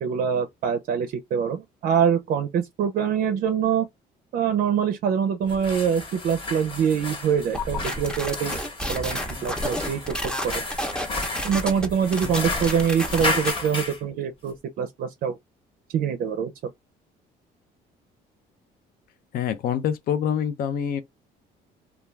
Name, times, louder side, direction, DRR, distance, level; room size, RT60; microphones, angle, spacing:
voice 1, 0.0-3.9 4.3-8.6 8.9-10.1 11.4-15.4 15.9-16.5, right 7 dB, 60° right, 0.5 m, -24 dB
sound 1, 5.4-14.0, left 2 dB, 30° left, 1.0 m, -33 dB
sound 2, 7.5-13.5, equal, 5° left, 0.6 m, -30 dB
voice 2, 19.3-21.0, left 8 dB, 60° left, 0.5 m, -25 dB
2.3 x 2.3 x 3.1 m
cardioid pair, 110°, 17 cm